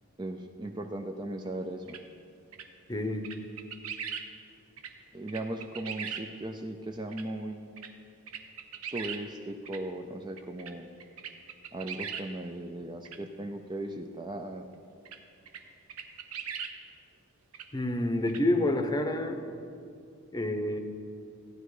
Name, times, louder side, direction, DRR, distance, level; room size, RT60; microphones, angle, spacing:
voice 1, 0.2-2.0 5.1-7.9 8.9-10.9 11.7-14.6, right 1 dB, 20° right, 5 dB, 0.4 m, -37 dB
sound 1, 1.9-2.0 2.5-2.7 3.2-4.3 4.8-4.9 5.3-6.2 7.1-7.2 7.8-7.9 8.3-9.2 9.6-9.8 10.4-10.7 11.0-12.2 13.0-13.2 15.0-15.2 15.5-15.6 15.9-16.7 17.5-17.7 18.3-18.4, right 7 dB, 75° right, 0.9 m, -39 dB
voice 2, 2.9-3.3 17.7-19.4 20.3-20.8, left 1 dB, 20° left, 6 dB, 0.8 m, -28 dB
14.5 x 10.0 x 4.9 m, 2.4 s
head